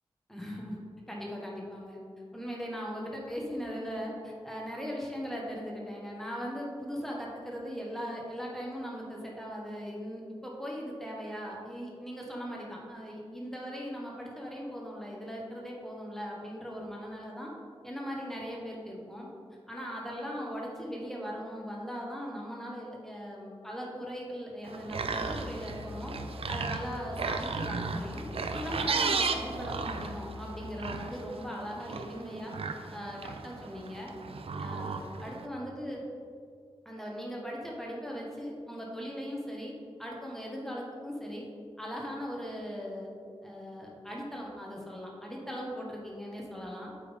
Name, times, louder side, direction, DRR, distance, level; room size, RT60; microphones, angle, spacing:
voice 1, 0.3-0.8 1.1-2.0 2.3-17.5 17.8-19.3 19.7-26.1 26.5-28.2 28.5-32.5 32.9-34.1 34.5-36.0 36.8-39.7 40.0-41.5 41.8-43.1 43.4-46.9, equal, 5° left, -3 dB, 1.4 m, -39 dB
sound 1, 24.6-35.5, right 4 dB, 70° right, 0.5 m, -35 dB
Musical instrument, 25.1-31.0, left 3 dB, 30° right, 0.8 m, -45 dB
8.1 x 5.3 x 3.6 m, 2.2 s
wide cardioid pair, 75°, 10 cm